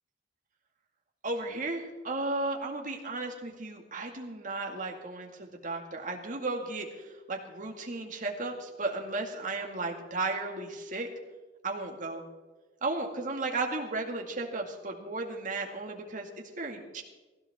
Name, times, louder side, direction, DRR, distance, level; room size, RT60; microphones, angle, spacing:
voice 1, 1.2-6.9 7.3-11.1 11.6-12.2 12.8-17.0, right 2 dB, 45° right, 1 dB, 2.1 m, -34 dB
19.0 x 16.0 x 3.7 m, 1.2 s
head